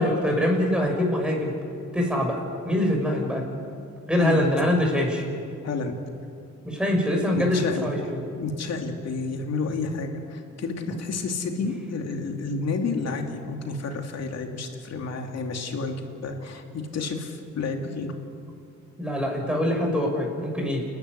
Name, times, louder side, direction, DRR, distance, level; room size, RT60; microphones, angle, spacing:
voice 1, 0.0-1.5 1.9-3.4 4.1-5.2 6.6-8.2 10.8-10.9 19.0-20.9, left 1 dB, 5° right, 0 dB, 6.6 m, -24 dB
voice 2, 5.6-6.0 7.3-7.9 8.4-18.1, left 4 dB, 60° left, 3 dB, 2.9 m, -30 dB
29.0 x 12.0 x 10.0 m, 2.4 s
cardioid pair, 90°, 30 cm